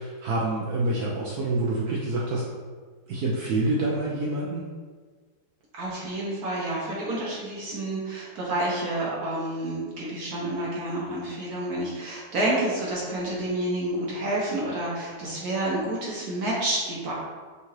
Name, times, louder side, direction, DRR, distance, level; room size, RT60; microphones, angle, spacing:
voice 1, 0.0-2.4 3.1-4.7, right 2 dB, 85° right, -4 dB, 0.8 m, -27 dB
voice 2, 5.7-17.1, right 1 dB, 65° right, -5 dB, 1.1 m, -29 dB
5.5 x 2.4 x 3.0 m, 1.5 s
omnidirectional pair, 2.2 m